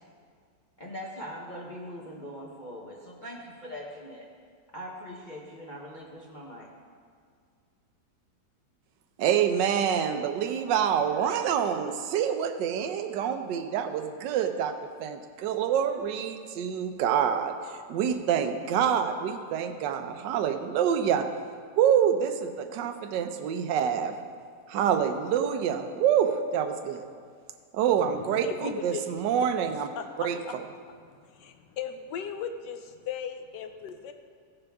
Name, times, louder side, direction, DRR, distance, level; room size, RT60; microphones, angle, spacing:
voice 1, 0.8-4.3 4.7-6.7, equal, 30° left, -4 dB, 0.9 m, -41 dB
voice 2, 9.2-14.7 15.0-17.5 17.9-21.3 21.8-24.1 24.7-27.0 27.7-29.9 30.2-30.6, right 8 dB, 75° right, 8 dB, 1.3 m, -26 dB
voice 3, 28.0-29.0 29.9-30.5 31.3-34.1, left 7 dB, 75° left, 7 dB, 1.3 m, -37 dB
16.0 x 6.8 x 3.5 m, 2.1 s
omnidirectional pair, 2.0 m